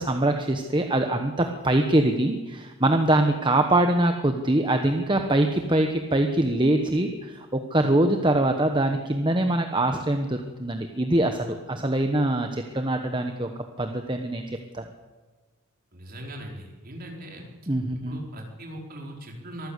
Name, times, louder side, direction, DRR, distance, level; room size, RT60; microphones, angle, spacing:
voice 1, 0.0-14.4 14.7-14.8 17.7-18.2, right 1 dB, 20° right, 5 dB, 1.2 m, -23 dB
voice 2, 15.9-17.4 18.0-19.7, right 1 dB, 40° right, 0 dB, 4.7 m, -40 dB
24.0 x 15.0 x 8.3 m, 1.3 s
head